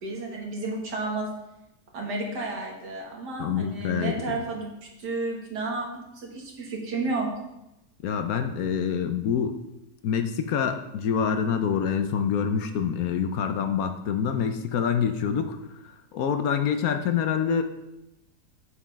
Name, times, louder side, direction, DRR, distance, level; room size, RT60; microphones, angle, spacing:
voice 1, 0.0-1.3 1.9-5.9 6.1-7.3, right 3 dB, 75° right, -1 dB, 2.3 m, -31 dB
voice 2, 3.4-4.4 8.0-9.5 10.0-15.6 16.1-17.6, left 7 dB, 65° left, 7 dB, 1.0 m, -26 dB
7.2 x 6.7 x 5.1 m, 0.92 s
omnidirectional pair, 1.8 m